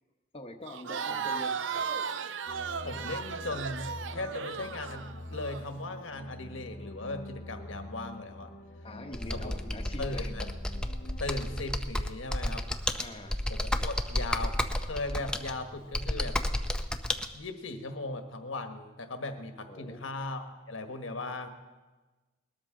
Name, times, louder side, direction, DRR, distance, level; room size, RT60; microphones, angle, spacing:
voice 1, 0.3-2.0 8.8-10.3 13.0-13.4 19.7-20.0, left 1 dB, 30° left, 3 dB, 1.0 m, -44 dB
Crowd, 0.7-5.6, right 6 dB, 65° right, 0.5 m, -35 dB
sound 1, 2.5-11.7, left 1 dB, 50° left, 0.9 m, -45 dB
voice 2, 2.8-8.5 9.3-9.5 10.0-10.5 11.2-12.6 13.5-16.4 17.3-21.5, left 2 dB, 85° left, 6 dB, 1.4 m, -38 dB
Computer keyboard, 9.1-17.3, left 1 dB, 5° left, 0.6 m, -32 dB
20.5 x 13.0 x 3.8 m, 1.2 s
head